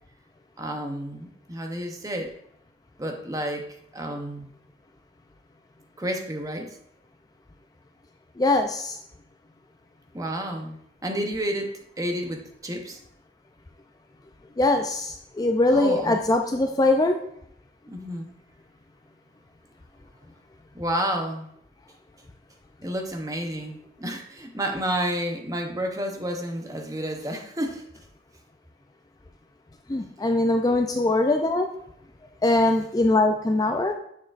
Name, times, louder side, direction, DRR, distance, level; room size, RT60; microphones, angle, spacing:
voice 1, 0.6-2.3 3.0-3.7 3.9-4.5 6.0-6.8 10.1-13.0 15.7-16.2 17.9-18.3 20.7-21.5 22.8-27.8, right 1 dB, 20° right, 3 dB, 0.7 m, -30 dB
voice 2, 8.4-9.0 14.6-17.2 29.9-31.7 32.4-33.9, left 2 dB, 20° left, 4 dB, 0.4 m, -22 dB
7.0 x 6.3 x 2.5 m, 0.72 s
head